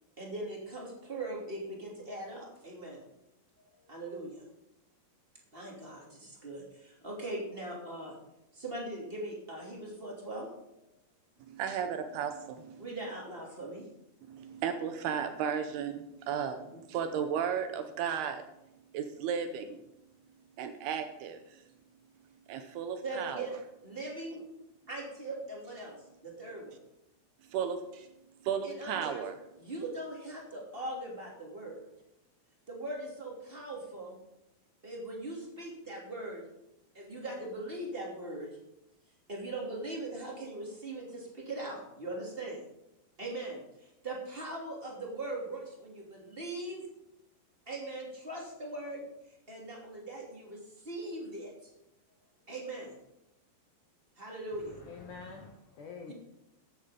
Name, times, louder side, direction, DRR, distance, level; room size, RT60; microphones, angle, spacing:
voice 1, 0.2-3.0 3.6-4.4 5.5-8.1 8.5-10.5 10.8-10.9 12.8-13.9 16.7-16.8 23.0-23.5 23.8-24.5 24.9-26.0 26.2-26.8 28.6-29.2 29.6-31.8 32.7-34.1 34.8-36.4 36.9-38.5 39.3-42.6 43.2-46.9 47.7-49.1 49.5-51.7 52.5-52.9 54.2-54.8 56.1-56.2, right 2 dB, 15° right, -2 dB, 2.2 m, -40 dB
voice 2, 11.5-12.9 14.3-18.4 18.9-19.8 20.6-21.6 22.5-23.5 27.5-28.1 28.4-29.3, right 7 dB, 75° right, 8 dB, 2.6 m, -34 dB
voice 3, 54.5-56.1, left 5 dB, 65° left, 2 dB, 2.1 m, -47 dB
14.0 x 9.9 x 5.1 m, 0.86 s
omnidirectional pair, 5.0 m